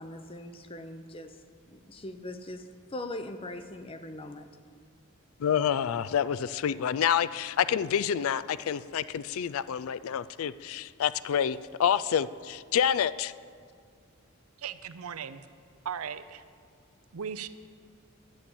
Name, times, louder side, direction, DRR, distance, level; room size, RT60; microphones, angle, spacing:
voice 1, 0.0-1.4 1.7-4.5, left 1 dB, 25° left, 9 dB, 0.6 m, -41 dB
voice 2, 5.4-13.3, left 8 dB, 70° left, 16 dB, 0.3 m, -28 dB
voice 3, 14.6-15.4 15.8-16.4 17.1-17.5, right 7 dB, 80° right, 12 dB, 0.6 m, -37 dB
11.0 x 6.9 x 8.6 m, 2.2 s
head